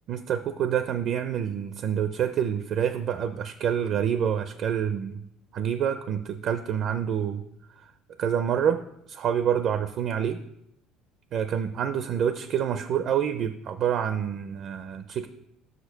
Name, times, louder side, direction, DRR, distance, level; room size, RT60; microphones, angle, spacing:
voice 1, 0.1-5.2 5.5-7.4 8.2-8.8 9.1-10.4 11.3-15.3, right 8 dB, 50° right, 10 dB, 0.4 m, -27 dB
6.1 x 5.0 x 6.4 m, 0.79 s
cardioid pair, 130°, 0 cm